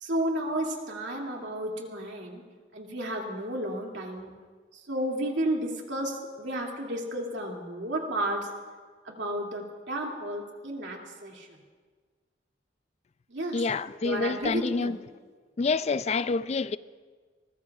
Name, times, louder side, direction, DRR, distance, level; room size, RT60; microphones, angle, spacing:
voice 1, 0.0-2.4 2.7-4.3 4.7-8.5 9.0-11.6 13.3-13.6 14.0-15.0, right 1 dB, 75° right, 2.5 m, -32 dB
voice 2, 13.5-15.0 15.6-16.8, left 4 dB, 35° left, 0.3 m, -27 dB
23.0 x 20.0 x 2.4 m
head